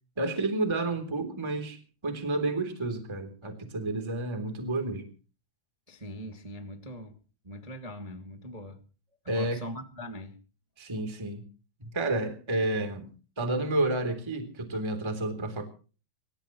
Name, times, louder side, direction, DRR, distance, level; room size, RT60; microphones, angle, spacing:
voice 1, 0.2-5.1 9.3-9.6 10.8-11.4 11.9-13.1 13.4-15.6, right 2 dB, 5° right, 2.6 m, -30 dB
voice 2, 5.9-7.2 7.4-8.8 9.2-10.4, equal, 35° right, 0.5 m, -41 dB
26.5 x 17.0 x 3.1 m
omnidirectional pair, 4.9 m